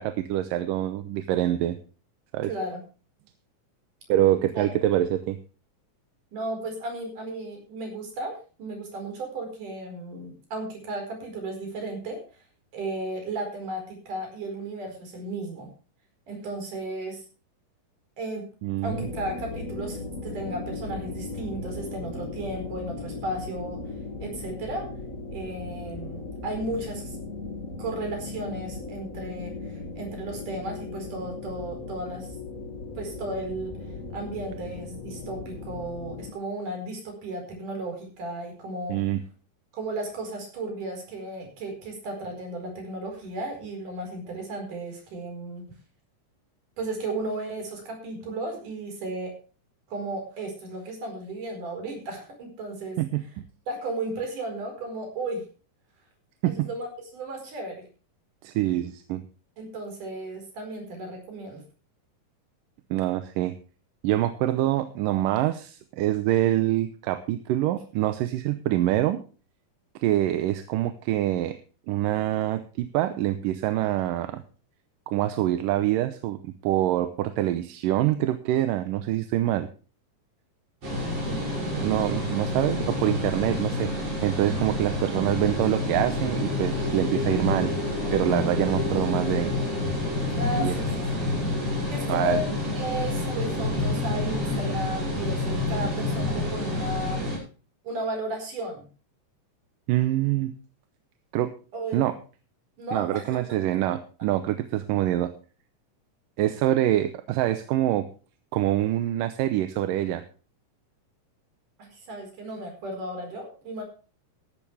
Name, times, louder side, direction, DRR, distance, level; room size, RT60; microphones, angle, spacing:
voice 1, 0.0-1.8 2.3-2.5 4.1-5.4 18.6-19.1 38.9-39.2 53.0-53.2 56.4-56.7 58.4-59.2 62.9-63.6 64.0-69.2 70.0-71.6 71.9-74.4 75.1-79.7 81.7-83.9 84.2-87.7 88.1-89.6 90.6-90.7 92.1-92.4 99.9-100.5 101.3-101.5 101.9-102.2 102.9-105.3 106.4-108.1 108.5-110.2, right 13 dB, 85° right, 10 dB, 2.5 m, -25 dB
voice 2, 2.5-2.8 4.6-4.7 6.3-12.2 12.7-15.7 16.3-17.2 18.2-18.4 18.8-23.8 24.2-24.9 25.3-27.2 27.8-32.3 33.0-39.0 39.7-45.6 46.8-49.4 49.9-53.0 53.7-55.4 56.4-57.8 59.6-61.6 81.8-83.0 90.4-91.3 91.9-97.3 97.8-98.9 101.7-102.0 102.8-103.3 111.8-113.8, right 2 dB, 70° right, 3 dB, 6.1 m, -34 dB
sound 1, 18.8-36.3, left 3 dB, 30° left, 1.9 m, -37 dB
sound 2, 80.8-97.4, left 1 dB, 50° right, 7.2 m, -28 dB
Artillery Drone Cadmium, 84.8-93.0, left 5 dB, 70° left, 2.9 m, -37 dB
14.5 x 12.0 x 3.4 m, 0.36 s
omnidirectional pair, 3.8 m